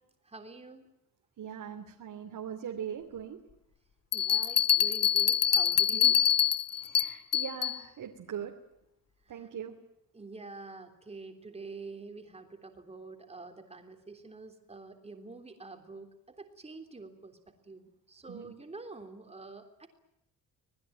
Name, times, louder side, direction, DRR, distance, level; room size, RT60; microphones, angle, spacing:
voice 1, 0.3-0.9 4.1-6.2 9.3-9.5 10.1-17.4 17.6-19.9, right 3 dB, 15° right, 6 dB, 3.5 m, -47 dB
voice 2, 1.4-3.4 5.9-6.2 6.7-8.5 9.3-9.7 18.3-18.5, right 8 dB, 55° right, 2 dB, 3.0 m, -41 dB
sound 1, 4.1-7.8, left 9 dB, 40° left, 0.9 m, -25 dB
26.0 x 20.0 x 9.1 m, 0.85 s
wide cardioid pair, 175°, 38 cm